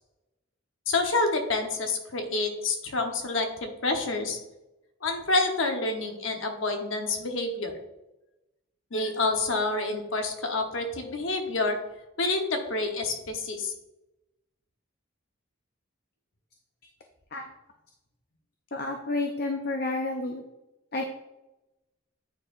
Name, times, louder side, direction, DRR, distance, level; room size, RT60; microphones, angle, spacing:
voice 1, 0.9-4.4 5.0-7.8 8.9-11.8 12.2-13.7, left 3 dB, 70° left, 4 dB, 1.0 m, -28 dB
voice 2, 18.7-20.4 20.9-21.1, left 2 dB, 50° left, 3 dB, 0.5 m, -30 dB
9.3 x 4.5 x 2.5 m, 0.97 s
head